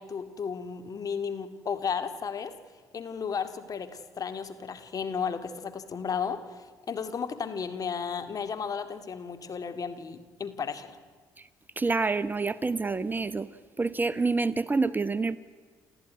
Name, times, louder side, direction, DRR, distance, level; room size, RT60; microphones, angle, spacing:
voice 1, 0.0-2.5 2.9-11.0, left 6 dB, 45° left, 9 dB, 2.1 m, -34 dB
voice 2, 11.8-13.5 13.8-15.4, right 3 dB, 25° right, 15 dB, 0.9 m, -27 dB
28.5 x 14.0 x 9.4 m, 1.5 s
supercardioid pair, 60°, 8 cm